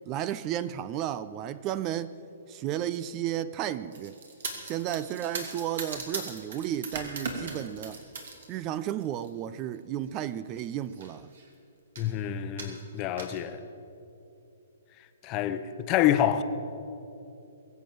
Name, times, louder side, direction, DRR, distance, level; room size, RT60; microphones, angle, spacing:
voice 1, 0.1-2.2 2.5-4.2 4.6-8.0 8.5-11.3, right 11 dB, 30° right, 0.4 m, -33 dB
sound 1, 3.9-8.5 8.9-9.3 10.1-10.3 10.6-10.7 10.9-11.5 12.0-12.1 12.6-13.4, right 4 dB, 65° right, 2.8 m, -38 dB
voice 2, 12.0-13.6 15.2-16.4, left 11 dB, 30° left, 0.9 m, -27 dB
22.5 x 7.6 x 7.5 m
hypercardioid pair, 140°, 0 cm